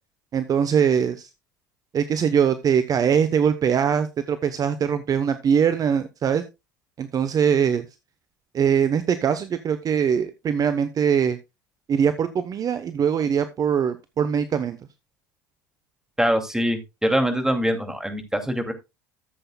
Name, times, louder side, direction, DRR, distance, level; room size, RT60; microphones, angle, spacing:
voice 1, 0.3-1.3 1.9-6.4 7.0-7.9 8.5-11.4 11.9-14.8, right 7 dB, 35° right, 11 dB, 0.9 m, -22 dB
voice 2, 16.2-18.7, equal, 5° right, 6 dB, 2.4 m, -23 dB
14.5 x 7.9 x 2.3 m, 0.24 s
hypercardioid pair, 70°, 10 cm